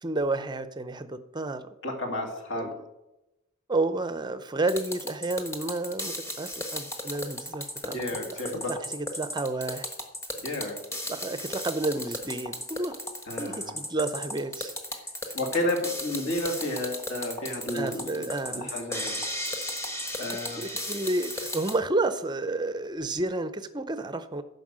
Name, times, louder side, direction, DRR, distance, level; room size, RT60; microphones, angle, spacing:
voice 1, 0.0-1.6 2.5-2.7 3.7-8.0 8.3-9.9 11.1-13.0 13.4-14.7 17.7-18.7 20.6-24.4, right 2 dB, 20° right, 12 dB, 0.6 m, -31 dB
voice 2, 1.8-2.7 7.9-8.7 10.4-10.8 13.3-13.8 15.3-19.2 20.2-20.6, left 1 dB, 55° left, 1 dB, 2.2 m, -32 dB
sound 1, 4.7-21.8, left 1 dB, 10° left, 1.2 m, -35 dB
11.0 x 5.4 x 7.5 m, 0.95 s
head